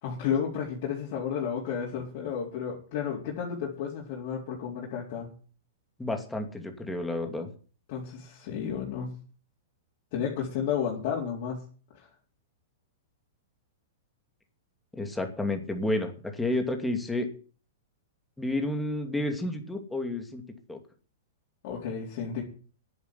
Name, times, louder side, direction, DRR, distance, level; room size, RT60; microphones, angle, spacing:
voice 1, 0.0-5.3 7.9-9.1 10.1-11.6 21.6-22.4, left 7 dB, 50° left, -4 dB, 4.2 m, -32 dB
voice 2, 6.0-7.5 14.9-17.3 18.4-20.4 20.7-20.8, left 1 dB, 5° left, 5 dB, 2.6 m, -30 dB
11.0 x 8.3 x 9.8 m, 0.40 s
hypercardioid pair, 135°, 0 cm